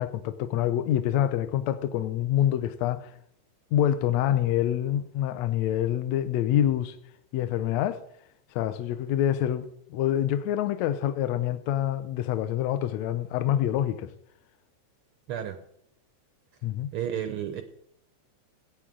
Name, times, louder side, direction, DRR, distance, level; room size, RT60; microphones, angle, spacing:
voice 1, 0.0-3.1 3.7-7.0 7.3-8.0 8.5-14.1 16.6-16.9, left 11 dB, 80° left, 1.7 m, -26 dB
voice 2, 15.3-15.6 16.9-17.6, right 10 dB, 85° right, 1.2 m, -31 dB
16.5 x 8.6 x 3.7 m
omnidirectional pair, 3.5 m